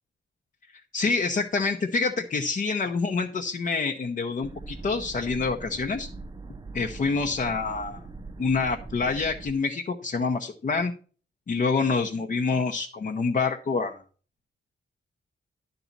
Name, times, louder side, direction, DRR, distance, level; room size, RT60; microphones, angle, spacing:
voice 1, 0.9-6.1 6.7-8.0 8.4-10.9 11.5-14.0, left 4 dB, 40° left, 2 dB, 0.8 m, -27 dB
sound 1, 4.4-9.5, right 3 dB, 20° right, 0.6 m, -41 dB
11.5 x 4.0 x 7.3 m, 0.40 s
wide cardioid pair, 165°, 21 cm